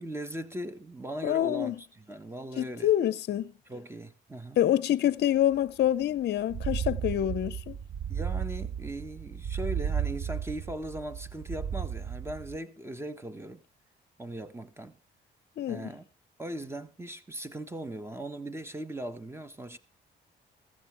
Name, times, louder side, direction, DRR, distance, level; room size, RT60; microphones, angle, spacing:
voice 1, 0.0-2.9 3.7-4.6 8.1-13.6 14.2-14.9 15.7-16.1 16.4-19.8, right 1 dB, 10° right, 1.3 m, -39 dB
voice 2, 1.2-1.8 2.6-3.5 4.6-7.8 15.6-15.9, left 11 dB, 60° left, 0.6 m, -26 dB
sound 1, 5.5-5.6 5.9-6.0 6.4-12.6, right 8 dB, 45° right, 0.7 m, -34 dB
15.5 x 14.0 x 3.4 m
cardioid pair, 90°, 20 cm